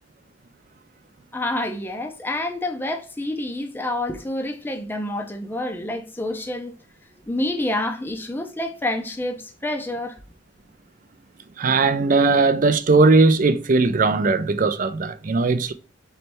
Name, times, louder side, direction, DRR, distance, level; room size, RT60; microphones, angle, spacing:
voice 1, 1.3-6.7 7.3-10.2, left 1 dB, 10° left, 0.5 m, -28 dB
voice 2, 11.6-15.7, right 3 dB, 40° right, 0.4 m, -18 dB
3.3 x 3.2 x 4.2 m
head